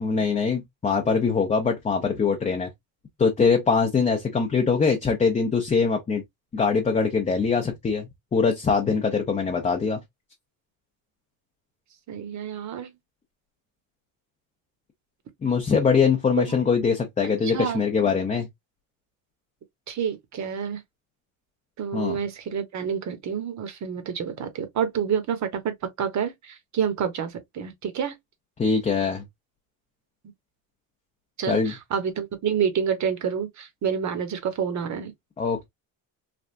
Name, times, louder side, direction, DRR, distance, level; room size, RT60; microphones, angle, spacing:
voice 1, 0.0-2.7 3.2-6.2 6.5-10.0 15.4-18.5 21.9-22.2 28.6-29.2 31.5-31.7 35.4-35.7, left 5 dB, 15° left, 0.6 m, -23 dB
voice 2, 12.1-12.9 16.5-16.6 17.4-18.1 19.9-20.8 21.8-28.2 31.4-35.1, right 7 dB, 40° right, 0.9 m, -28 dB
3.4 x 2.4 x 2.4 m
cardioid pair, 125°, 42 cm